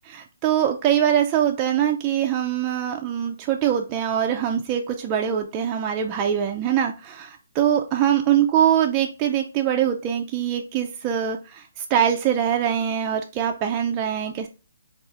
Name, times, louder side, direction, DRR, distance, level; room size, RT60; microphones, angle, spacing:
voice 1, 0.1-14.5, right 9 dB, 25° right, 2 dB, 0.3 m, -23 dB
4.3 x 2.4 x 3.3 m, 0.32 s
hypercardioid pair, 150°, 0 cm